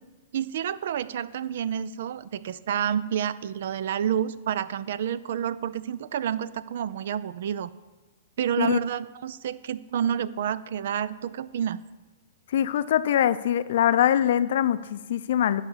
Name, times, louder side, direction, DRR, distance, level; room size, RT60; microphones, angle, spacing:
voice 1, 0.3-7.7 8.4-11.8, right 9 dB, 65° right, 17 dB, 0.4 m, -29 dB
voice 2, 12.5-15.6, left 10 dB, 65° left, 14 dB, 0.4 m, -23 dB
11.5 x 4.1 x 7.2 m, 1.3 s
hypercardioid pair, 145°, 0 cm